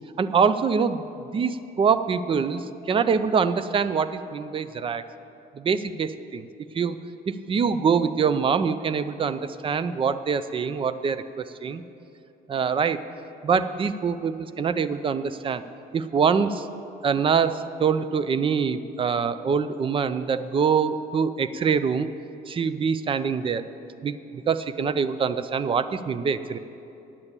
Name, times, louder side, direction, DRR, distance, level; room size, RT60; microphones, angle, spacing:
voice 1, 0.2-1.0 1.3-5.0 5.5-6.4 6.7-7.0 7.3-11.8 12.5-13.0 13.4-15.6 15.9-16.7 17.0-22.1 22.5-23.6 24.0-26.6, right 6 dB, 30° right, 13 dB, 0.5 m, -24 dB
8.8 x 8.6 x 8.2 m, 2.8 s
cardioid pair, 110°, 17 cm